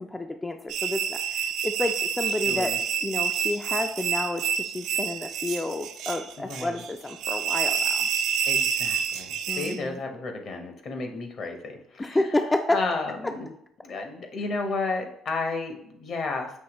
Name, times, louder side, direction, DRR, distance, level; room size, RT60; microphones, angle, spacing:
voice 1, 0.0-2.7 3.0-8.1 9.5-10.0 12.0-12.8, left 2 dB, 15° left, 5 dB, 0.3 m, -30 dB
sound 1, 0.7-9.8, right 7 dB, 75° right, 0.3 m, -28 dB
voice 2, 2.4-2.8 6.4-6.9 8.4-12.2 12.7-13.5 13.8-16.6, left 3 dB, 60° left, 4 dB, 0.8 m, -32 dB
5.6 x 2.8 x 3.0 m, 0.72 s
supercardioid pair, 80°, 0 cm